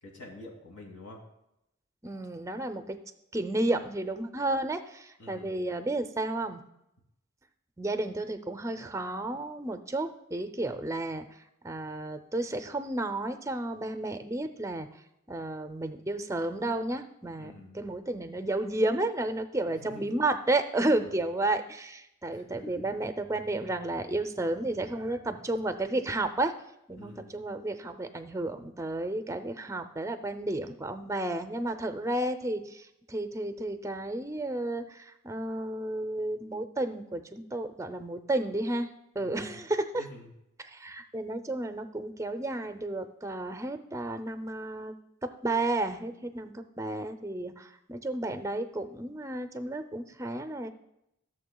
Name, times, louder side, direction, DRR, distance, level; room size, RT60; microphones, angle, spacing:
voice 1, 0.0-1.2 5.2-5.6 17.4-17.8 19.8-20.2 20.9-21.1 22.3-22.8 27.0-27.5 39.2-39.5 39.9-40.3, left 1 dB, 80° left, 0 dB, 2.4 m, -47 dB
voice 2, 2.0-3.0 3.3-6.6 7.8-11.3 11.6-14.9 15.3-26.5 26.9-38.9 39.2-40.1 40.6-44.9 45.4-50.7, right 2 dB, 15° right, 8 dB, 0.5 m, -32 dB
15.5 x 7.0 x 2.3 m, 0.83 s
head